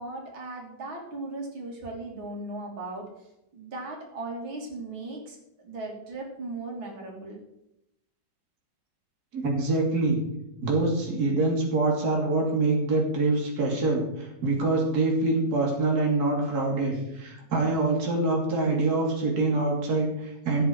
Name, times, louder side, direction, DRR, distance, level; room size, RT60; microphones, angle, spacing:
voice 1, 0.0-3.1 3.5-7.4, right 2 dB, 90° right, -1 dB, 3.8 m, -37 dB
voice 2, 9.3-10.2 10.6-20.7, right 2 dB, 50° right, -1 dB, 3.2 m, -25 dB
15.5 x 9.3 x 4.7 m, 0.85 s
omnidirectional pair, 2.1 m